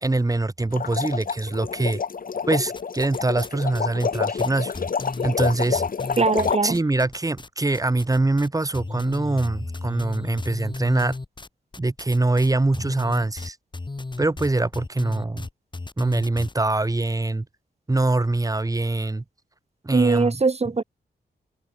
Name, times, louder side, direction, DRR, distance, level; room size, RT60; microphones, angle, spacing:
voice 1, 0.0-2.0 2.5-4.7 5.2-5.8 6.6-11.2 11.8-13.6 14.2-15.5 16.0-17.5 17.9-19.2 19.8-20.4, right 2 dB, 20° right, 2.6 m, -23 dB
sound 1, 0.7-6.6, left 6 dB, 55° left, 2.5 m, -28 dB
sound 2, 2.8-3.5 3.7-7.5 7.7-8.5 8.7-16.5, left 3 dB, 25° left, 4.3 m, -35 dB
voice 2, 6.2-6.8 19.9-20.8, right 4 dB, 35° right, 5.7 m, -21 dB
wide cardioid pair, 105°, 18 cm